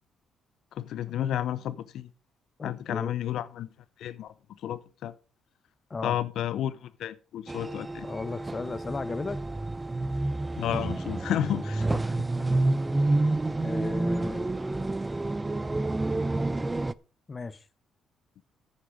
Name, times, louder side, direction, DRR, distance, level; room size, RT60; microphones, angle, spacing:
voice 1, 0.7-2.1 2.6-3.7 4.0-4.3 4.6-5.1 6.0-8.1 10.6-11.9, left 11 dB, 75° left, 0.5 m, -31 dB
voice 2, 2.6-3.1 5.9-6.2 8.0-9.4 11.9-12.5 13.6-14.5 17.3-17.6, left 4 dB, 30° left, 0.9 m, -36 dB
sound 1, 7.5-16.9, right 2 dB, 20° right, 0.5 m, -29 dB
9.7 x 8.7 x 5.0 m
cardioid pair, 90°, 0 cm